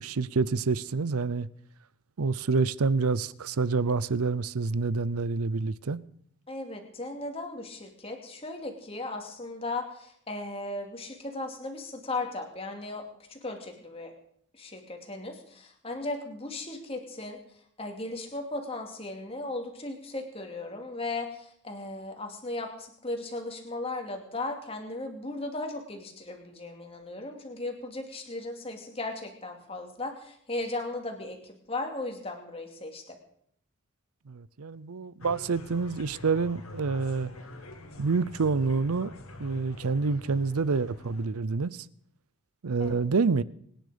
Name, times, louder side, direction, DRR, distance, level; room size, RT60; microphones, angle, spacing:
voice 1, 0.0-1.5 2.2-6.0 34.3-37.3 38.0-39.1 39.4-41.9 42.6-43.4, right 4 dB, 85° right, 0.6 m, -27 dB
voice 2, 6.5-13.0 13.3-14.1 14.6-33.2 42.8-43.0, left 2 dB, 25° left, 2.6 m, -37 dB
sound 1, 35.2-41.3, left 1 dB, 75° left, 2.3 m, -45 dB
24.5 x 10.5 x 5.1 m
head